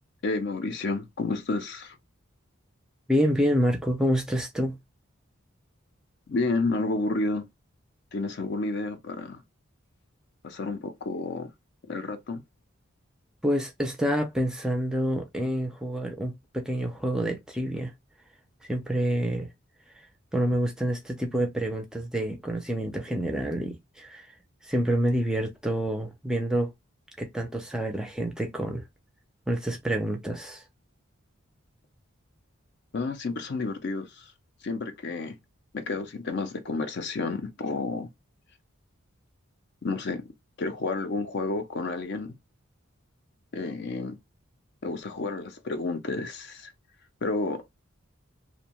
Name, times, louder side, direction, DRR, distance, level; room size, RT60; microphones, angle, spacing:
voice 1, 0.2-2.0 6.3-7.5 8.1-9.4 10.4-11.5 11.9-12.4 32.9-34.2 34.6-35.4 35.7-38.1 39.8-40.3 40.6-42.4 43.5-44.2 44.8-46.7 47.2-47.6, left 3 dB, 55° left, 0.5 m, -30 dB
voice 2, 3.1-4.8 13.4-17.9 18.7-19.5 20.3-24.3 24.6-26.7 27.2-28.8 29.5-30.6, equal, 5° right, 0.4 m, -27 dB
2.6 x 2.1 x 2.9 m
head